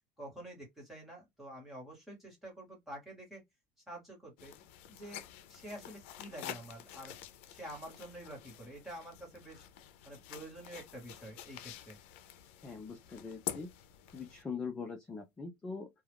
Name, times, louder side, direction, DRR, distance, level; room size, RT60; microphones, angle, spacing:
voice 1, 0.2-3.4 3.9-4.5 4.9-5.2 5.5-7.1 7.5-9.7 10.0-12.0, right 1 dB, 5° right, 1.2 m, -48 dB
sound 1, 4.4-14.4, left 11 dB, 85° left, 0.4 m, -48 dB
voice 2, 12.6-13.7 14.1-15.9, left 5 dB, 10° left, 0.4 m, -42 dB
2.3 x 2.2 x 3.4 m
cardioid pair, 175°, 7 cm